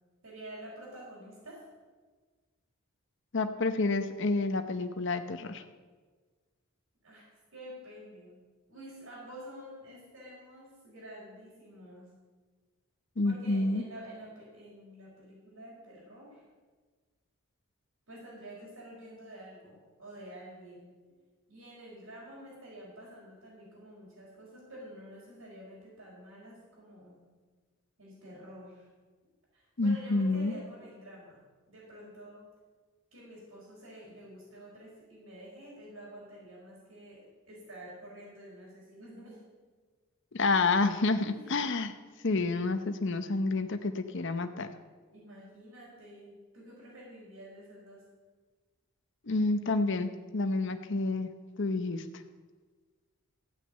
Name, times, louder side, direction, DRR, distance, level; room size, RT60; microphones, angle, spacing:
voice 1, 0.2-1.7 7.0-8.4 8.7-12.1 13.2-16.4 18.1-20.9 21.5-27.2 28.0-28.9 29.5-32.5 33.1-39.4 41.3-41.8 45.1-48.0, equal, 85° right, -9 dB, 5.1 m, -49 dB
voice 2, 3.3-5.6 13.2-13.8 29.8-30.5 40.3-41.9 42.2-44.7 49.2-51.3 51.6-52.1, left 3 dB, 60° left, 8 dB, 0.8 m, -29 dB
15.5 x 6.2 x 8.9 m, 1.4 s
head